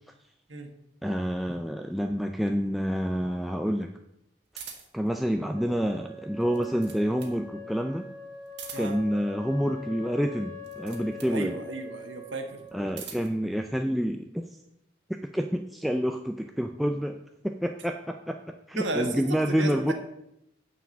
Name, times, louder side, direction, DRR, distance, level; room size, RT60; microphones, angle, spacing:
voice 1, 1.0-3.9 4.9-8.1 8.8-11.5 12.7-14.4 15.3-17.2 17.4-19.9, equal, ahead, 3 dB, 0.3 m, -28 dB
sound 1, 4.5-5.1 6.4-7.4 8.5-9.1 10.6-11.4 12.6-13.4, right 7 dB, 65° right, 1.7 m, -44 dB
Wind instrument woodwind instrument, 5.5-13.2, left 3 dB, 25° right, 1.5 m, -44 dB
voice 2, 11.3-12.6 18.7-19.9, right 2 dB, 85° right, 4 dB, 1.5 m, -33 dB
9.3 x 4.8 x 7.0 m, 0.81 s
head